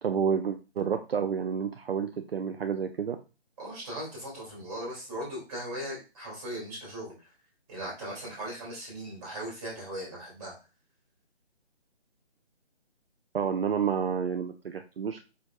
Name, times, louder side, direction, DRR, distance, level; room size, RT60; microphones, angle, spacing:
voice 1, 0.0-3.2 13.3-15.3, right 7 dB, 60° right, 7 dB, 0.5 m, -29 dB
voice 2, 3.6-7.3 7.7-10.6, right 1 dB, 15° right, -4 dB, 2.1 m, -38 dB
5.1 x 4.0 x 2.2 m, 0.31 s
figure-of-eight pair, 150°, 33 cm